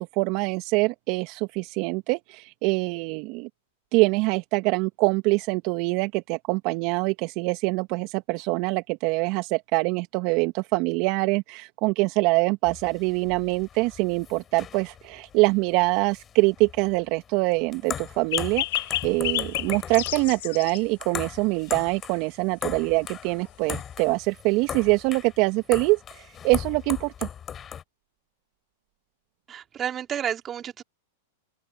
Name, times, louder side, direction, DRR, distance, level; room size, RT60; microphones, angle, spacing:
voice 1, 0.0-3.5 3.9-27.3, right 25 dB, 50° right, 1.7 m, -24 dB
sound 1, 12.7-27.8, left 8 dB, 25° left, 4.8 m, -38 dB
sound 2, 18.3-20.8, left 17 dB, 65° left, 2.2 m, -29 dB
voice 2, 29.5-30.8, right 9 dB, 30° right, 3.5 m, -31 dB
open air
hypercardioid pair, 105°, 0 cm